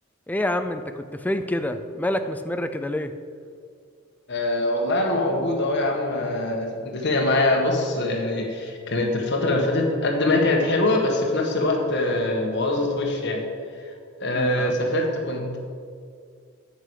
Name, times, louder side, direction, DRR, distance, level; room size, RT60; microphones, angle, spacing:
voice 1, 0.3-3.1 14.4-14.7, left 1 dB, 10° left, 8 dB, 0.4 m, -27 dB
voice 2, 4.3-13.4 14.2-15.6, left 2 dB, 55° left, 0 dB, 1.8 m, -23 dB
9.5 x 6.0 x 8.4 m, 2.2 s
head